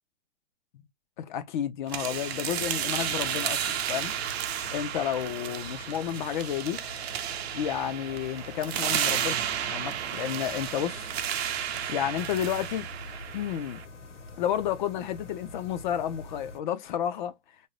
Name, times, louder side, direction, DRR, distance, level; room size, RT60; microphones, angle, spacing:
voice 1, 1.2-4.1 4.7-6.8 7.5-9.4 9.7-11.1 11.9-12.9 13.3-13.8 14.4-17.3, left 10 dB, 45° left, 0.5 m, -31 dB
sound 1, 1.9-13.8, right 10 dB, 60° right, 0.7 m, -32 dB
sound 2, 4.0-16.6, left 2 dB, 80° left, 1.2 m, -46 dB
2.6 x 2.2 x 3.1 m
hypercardioid pair, 145°, 35 cm